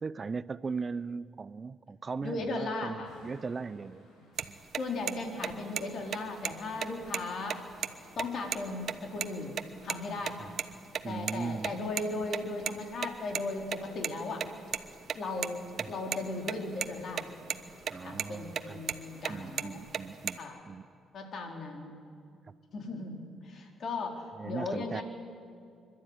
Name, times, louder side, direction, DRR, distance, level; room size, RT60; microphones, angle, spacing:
voice 1, 0.0-4.1 4.4-4.6 10.4-10.6 11.0-11.7 15.8-15.9 17.9-18.8 19.3-20.4 20.7-20.8 24.3-25.0, right 4 dB, 35° right, 17 dB, 0.5 m, -38 dB
voice 2, 2.2-3.1 4.8-7.6 8.2-10.5 11.1-14.5 15.1-17.3 18.0-19.8 20.4-20.6 21.1-21.9 22.7-25.0, left 3 dB, 60° left, 2 dB, 3.8 m, -37 dB
sound 1, 3.0-20.5, left 1 dB, 90° left, 6.9 m, -59 dB
sound 2, 4.4-4.5 4.7-4.8 5.1-5.2 5.4-5.8 6.1-6.2 6.4-6.5 6.8-7.9 8.2-8.3 8.5-8.6 8.9-9.3 9.6-10.0 10.3-11.3 11.6-14.1 14.4-16.2 16.5-16.6 16.8-17.2 17.5-17.9 18.2-19.3 19.6-20.3, right 8 dB, 60° right, 1.0 m, -33 dB
26.0 x 12.0 x 9.6 m, 2.4 s
cardioid pair, 90°, 0 cm